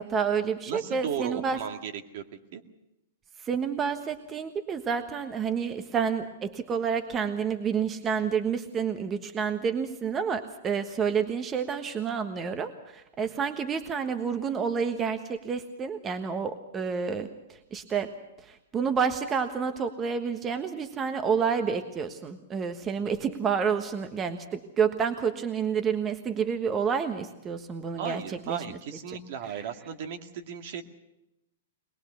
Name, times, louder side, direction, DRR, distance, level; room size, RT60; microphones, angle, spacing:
voice 1, 0.0-1.6 3.4-18.1 18.4-28.8 29.1-29.2, right 6 dB, 20° right, 8 dB, 1.3 m, -29 dB
voice 2, 0.7-2.6 28.0-30.8, right 8 dB, 55° right, 5 dB, 2.1 m, -36 dB
22.0 x 21.0 x 6.9 m, 0.93 s
hypercardioid pair, 120°, 0 cm